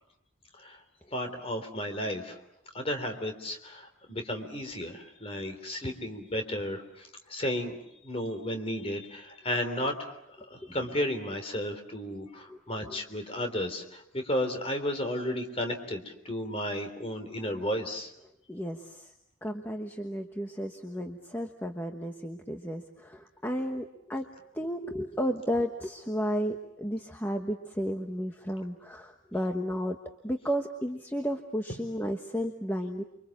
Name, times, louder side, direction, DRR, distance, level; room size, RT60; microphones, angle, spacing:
voice 1, 1.1-2.4 2.7-7.7 8.0-10.1 10.5-18.1, left 1 dB, 30° left, 5 dB, 3.5 m, -33 dB
voice 2, 10.4-10.8 12.5-13.0 18.5-19.1 19.4-24.3 24.5-30.0 30.2-33.0, equal, 10° left, 4 dB, 1.2 m, -33 dB
30.0 x 24.5 x 7.3 m, 0.82 s
head